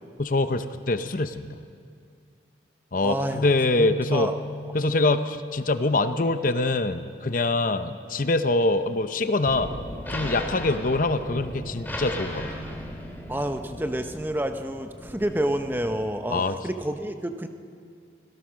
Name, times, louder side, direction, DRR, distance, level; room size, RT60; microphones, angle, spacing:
voice 1, 0.2-1.6 2.9-3.2 3.4-4.3 4.7-9.7 10.1-12.5 16.3-16.6, left 2 dB, 45° left, 10 dB, 0.7 m, -24 dB
voice 2, 3.0-3.5 3.7-4.4 13.3-17.5, right 1 dB, 10° right, 7 dB, 0.8 m, -29 dB
sound 1, 3.3-6.8, left 1 dB, 70° left, 1.4 m, -38 dB
sound 2, 9.4-16.1, equal, 10° left, 2.4 m, -36 dB
25.5 x 17.5 x 6.3 m, 2.2 s
head